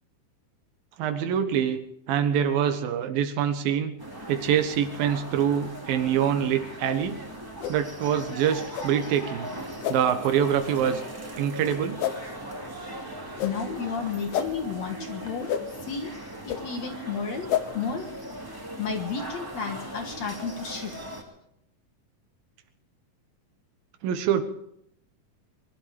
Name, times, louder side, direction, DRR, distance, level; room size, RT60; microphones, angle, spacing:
voice 1, 1.0-1.8 2.1-3.9 4.3-7.2 7.7-9.5 9.9-11.0 11.4-12.0 24.0-24.4, right 9 dB, 80° right, 8 dB, 3.0 m, -25 dB
sound 1, 4.0-21.2, right 1 dB, 5° right, 2.0 m, -39 dB
sound 2, 7.6-7.8 8.7-8.9 9.8-10.0 10.8-10.9 12.0-12.2 13.4-13.5 14.3-14.5 15.5-15.6 16.5-16.6 17.5-17.6, left 10 dB, 80° left, 2.9 m, -28 dB
voice 2, 13.4-15.5 15.8-16.1 16.4-17.5 17.7-18.1 18.8-21.2, left 5 dB, 55° left, 4 dB, 2.3 m, -32 dB
23.0 x 12.0 x 5.1 m, 0.78 s
omnidirectional pair, 4.1 m